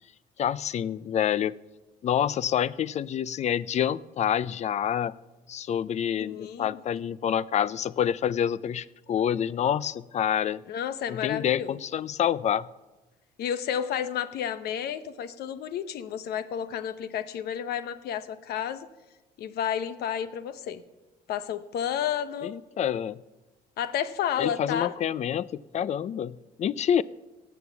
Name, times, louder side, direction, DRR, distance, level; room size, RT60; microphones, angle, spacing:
voice 1, 0.4-1.6 2.0-5.1 5.5-10.6 11.1-12.7 22.4-23.2 24.4-27.0, left 9 dB, 40° left, 19 dB, 0.4 m, -27 dB
voice 2, 6.2-6.8 10.7-11.8 13.4-18.9 19.4-20.8 21.3-22.5 23.8-24.9, left 9 dB, 70° left, 13 dB, 0.9 m, -31 dB
17.0 x 7.1 x 7.0 m, 1.1 s
cardioid pair, 110°, 17 cm